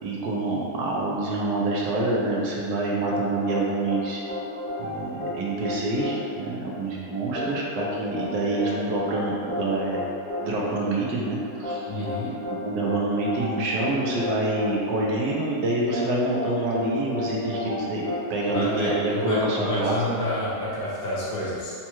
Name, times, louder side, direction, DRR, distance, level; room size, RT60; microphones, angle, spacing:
voice 1, 0.0-4.2 4.8-10.0 10.4-11.9 12.5-18.0 18.3-20.0, right 2 dB, 80° right, -3 dB, 1.2 m, -26 dB
sound 1, 3.1-19.9, left 1 dB, 50° left, 1.1 m, -33 dB
voice 2, 11.9-12.3 18.5-21.7, left 1 dB, 65° left, -8 dB, 1.5 m, -29 dB
4.5 x 2.2 x 2.9 m, 2.4 s
omnidirectional pair, 1.9 m